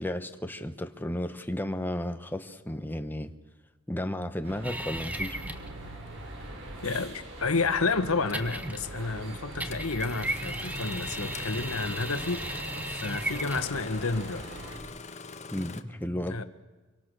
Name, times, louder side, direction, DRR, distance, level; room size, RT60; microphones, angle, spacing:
voice 1, 0.0-3.3 3.9-5.4 14.8-15.0 15.5-16.4, left 1 dB, 10° left, 1.1 m, -33 dB
sound 1, 4.4-14.8, right 1 dB, 60° right, 6.3 m, -42 dB
sound 2, 4.6-5.7 8.3-9.1 9.6-13.8, right 1 dB, 5° right, 1.3 m, -36 dB
voice 2, 6.8-14.4 16.3-16.4, left 4 dB, 80° left, 1.4 m, -30 dB
Engine starting, 7.0-7.1 8.3-8.5 9.7-15.8, left 4 dB, 30° left, 1.2 m, -44 dB
26.0 x 24.0 x 6.7 m
head